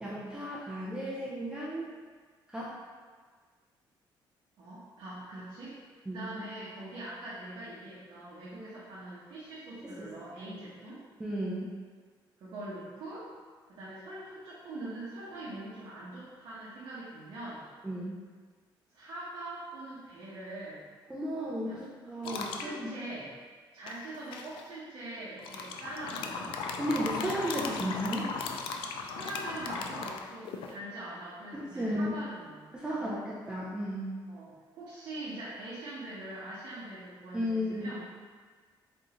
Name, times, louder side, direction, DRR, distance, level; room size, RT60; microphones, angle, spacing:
voice 1, 0.0-1.9 2.5-2.8 6.1-6.3 9.8-10.1 11.2-11.7 17.8-18.2 21.1-22.9 26.8-28.3 31.5-32.2 32.7-34.1 37.3-37.9, equal, 10° right, -7 dB, 0.5 m, -34 dB
voice 2, 4.6-5.8 6.1-11.0 12.4-13.3 13.7-17.6 18.9-20.8 21.6-21.8 22.2-23.3 23.7-26.6 28.8-32.6 33.0-33.3 34.3-38.1, right 1 dB, 60° right, -9 dB, 0.9 m, -43 dB
sound 1, 22.2-22.7 23.9-24.6 25.4-30.7, left 5 dB, 80° left, 0.4 m, -37 dB
3.8 x 3.6 x 2.9 m, 1.5 s
cardioid pair, 145°, 9 cm